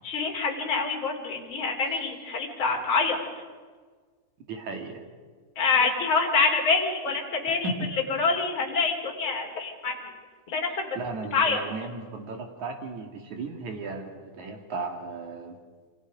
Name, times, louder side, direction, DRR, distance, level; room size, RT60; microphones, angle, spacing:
voice 1, 0.0-3.2 5.6-10.0 10.5-11.0 11.3-11.6, left 4 dB, 35° left, 1 dB, 3.7 m, -26 dB
voice 2, 4.5-5.0 7.5-7.7 10.9-15.6, right 3 dB, 55° right, 4 dB, 3.3 m, -35 dB
28.0 x 26.0 x 5.1 m, 1.5 s
omnidirectional pair, 4.4 m